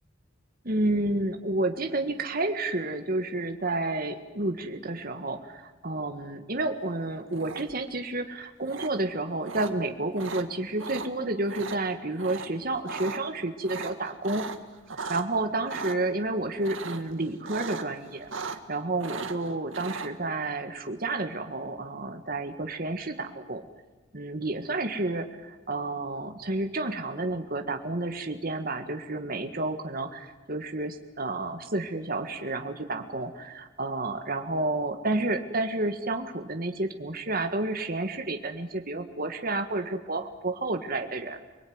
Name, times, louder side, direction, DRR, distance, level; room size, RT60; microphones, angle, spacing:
voice 1, 0.6-14.5 15.1-23.6 24.1-41.4, right 2 dB, 50° right, 6 dB, 1.8 m, -30 dB
sound 1, 7.3-7.9 8.7-8.9 9.5-9.7 10.2-10.4 10.8-11.1 11.5-11.8 12.2-12.5 12.7-13.2 13.6-15.2 15.7-16.0 16.6-17.1 17.4-17.9 18.1-18.7 19.0-20.1, right 4 dB, 80° right, 1.9 m, -37 dB
28.0 x 21.0 x 9.6 m, 1.2 s
head